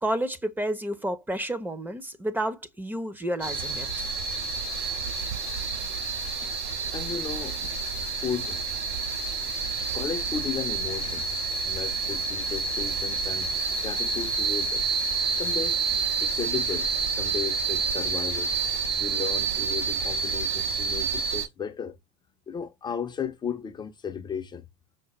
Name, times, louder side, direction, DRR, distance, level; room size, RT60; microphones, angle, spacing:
voice 1, 0.0-4.1 6.4-6.5, right 1 dB, 10° right, 0.7 m, -30 dB
sound 1, 3.4-21.5, right 5 dB, 60° right, 1.8 m, -29 dB
voice 2, 6.9-7.7 8.1-8.6 9.8-11.2 11.7-14.9 15.4-15.8 16.2-18.5 19.0-22.0 22.5-24.6, left 7 dB, 25° left, 0.6 m, -35 dB
5.8 x 2.1 x 3.1 m
supercardioid pair, 110°, 19 cm